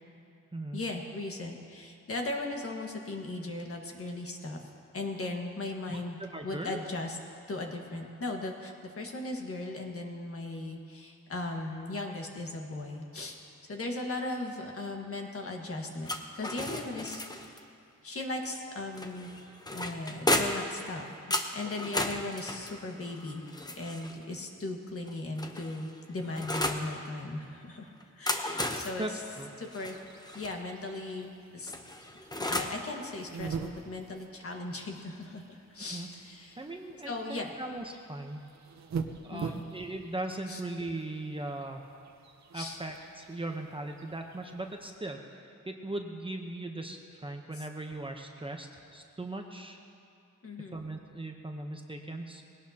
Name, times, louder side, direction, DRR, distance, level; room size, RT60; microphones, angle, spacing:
voice 1, 0.7-4.6 4.9-7.2 7.5-13.4 13.7-16.1 16.3-17.6 18.0-19.3 19.7-21.0 21.5-23.4 23.7-29.0 29.6-30.0 30.3-31.3 31.5-31.7 32.4-36.6 37.0-37.5 39.3-39.7 40.5-40.6 42.5-42.8 47.5-47.6 50.4-50.8, left 2 dB, 45° left, 2 dB, 1.6 m, -37 dB
voice 2, 5.9-6.8 29.0-29.1 29.4-29.5 35.9-36.1 36.6-38.5 39.2-41.8 42.5-49.8 50.7-52.4, right 2 dB, 15° right, 3 dB, 0.8 m, -39 dB
sound 1, 16.0-17.6 19.0-20.7 21.3-24.2 25.0-26.9 28.0-30.5 31.7-32.8, left 1 dB, 15° left, 0.8 m, -34 dB
sound 2, 29.6-45.0, right 5 dB, 60° right, 0.9 m, -45 dB
20.0 x 17.5 x 2.9 m, 2.5 s
wide cardioid pair, 130°, 30 cm